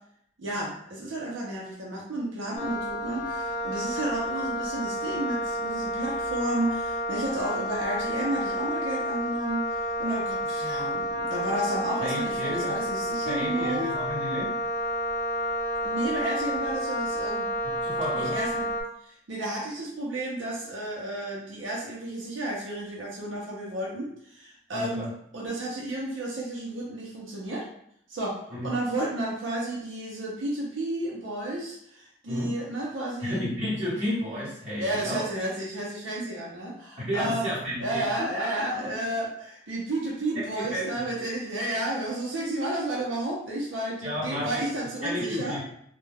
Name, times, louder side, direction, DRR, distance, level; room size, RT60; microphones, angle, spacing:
voice 1, 0.4-13.9 15.8-17.5 18.2-18.7 19.0-25.1 25.3-27.7 28.1-33.4 34.8-37.5 37.8-45.6, right 1 dB, 75° right, -4 dB, 0.6 m, -32 dB
Wind instrument woodwind instrument, 2.6-18.8, equal, 40° left, 0.5 m, -30 dB
voice 2, 12.0-12.7 13.2-14.5 17.6-18.4 24.7-25.1 28.5-28.7 32.2-32.5 33.2-35.2 37.0-38.9 40.3-41.0 44.0-44.6 45.0-45.6, equal, 35° right, -7 dB, 1.0 m, -32 dB
2.2 x 2.2 x 3.3 m, 0.69 s
head